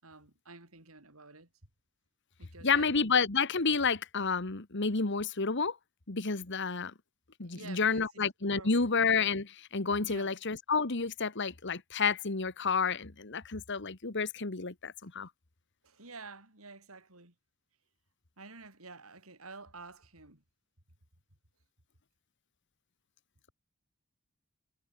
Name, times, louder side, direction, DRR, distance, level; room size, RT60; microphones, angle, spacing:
voice 1, 0.0-1.5 2.4-2.9 7.5-8.1 8.5-8.9 10.0-10.3 15.8-17.3 18.4-20.4, right 3 dB, 90° right, 6.3 m, -50 dB
voice 2, 2.6-5.8 6.1-6.9 7.4-15.3, left 5 dB, 55° left, 1.6 m, -30 dB
head